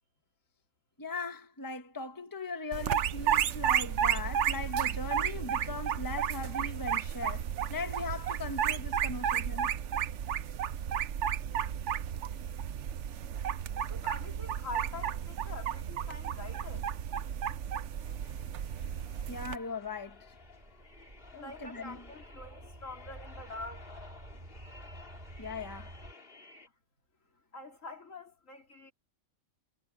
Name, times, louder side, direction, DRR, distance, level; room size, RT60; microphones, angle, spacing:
voice 1, 1.0-7.4 7.7-9.7 19.3-20.3 21.3-22.0 25.4-25.9, left 3 dB, 15° left, 1.4 m, -39 dB
sound 1, 2.7-19.6, right 9 dB, 65° right, 1.0 m, -32 dB
voice 2, 13.9-16.9 21.3-24.1 27.5-28.9, left 3 dB, 70° left, 3.5 m, -45 dB
sound 2, 18.0-26.7, left 3 dB, 40° left, 2.6 m, -54 dB
sound 3, 18.5-26.1, right 1 dB, 30° right, 2.2 m, -51 dB
omnidirectional pair, 1.4 m